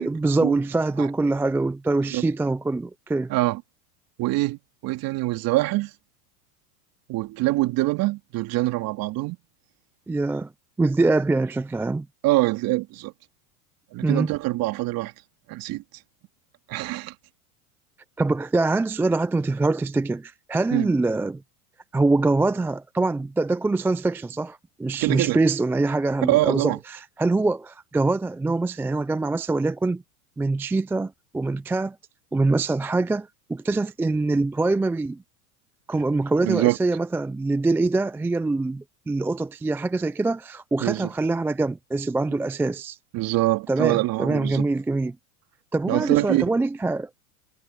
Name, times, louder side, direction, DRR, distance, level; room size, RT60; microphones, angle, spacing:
voice 1, 0.0-3.3 10.1-10.5 10.8-12.1 14.0-14.3 18.2-21.4 21.9-30.0 30.4-32.0 32.3-35.2 35.9-43.0 43.7-45.2 45.7-47.1, right 3 dB, 5° right, 0.4 m, -24 dB
voice 2, 3.3-3.6 4.2-5.9 7.1-9.4 12.2-13.1 13.9-15.1 15.5-15.8 16.7-17.1 20.7-20.9 25.0-25.4 26.3-26.8 36.4-36.8 40.8-41.1 43.1-44.7 45.9-46.5, right 19 dB, 50° right, 3.4 m, -24 dB
supercardioid pair, 115°, 46 cm